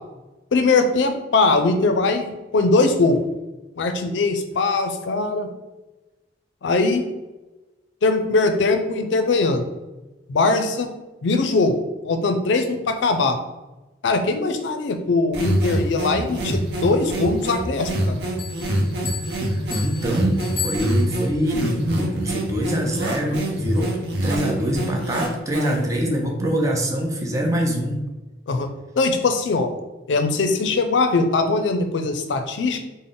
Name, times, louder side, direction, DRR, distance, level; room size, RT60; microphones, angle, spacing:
voice 1, 0.5-3.2 3.8-5.5 6.6-7.0 8.0-9.6 10.3-10.9 11.2-11.8 12.0-13.4 14.0-18.2 28.5-29.7 30.1-32.8, left 3 dB, 80° left, 7 dB, 0.4 m, -21 dB
sound 1, 15.3-26.0, right 1 dB, 60° right, 0.7 m, -26 dB
sound 2, 18.4-21.4, left 6 dB, 30° left, 0.8 m, -34 dB
voice 2, 19.5-23.9 24.2-28.0, equal, 20° right, 1 dB, 0.5 m, -24 dB
3.6 x 2.1 x 3.8 m, 1.1 s
head